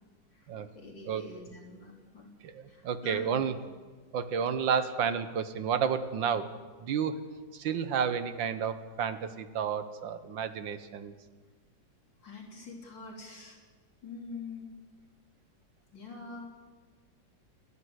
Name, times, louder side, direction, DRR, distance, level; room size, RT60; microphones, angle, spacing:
voice 1, 0.7-2.3 2.7-3.5 12.2-13.6 14.0-14.7 15.9-16.4, left 3 dB, 75° left, -1 dB, 4.4 m, -45 dB
voice 2, 2.4-3.6 4.1-6.5 6.8-7.2 7.5-11.1, right 7 dB, 80° right, 12 dB, 1.8 m, -31 dB
29.5 x 11.0 x 8.1 m, 1.4 s
omnidirectional pair, 2.0 m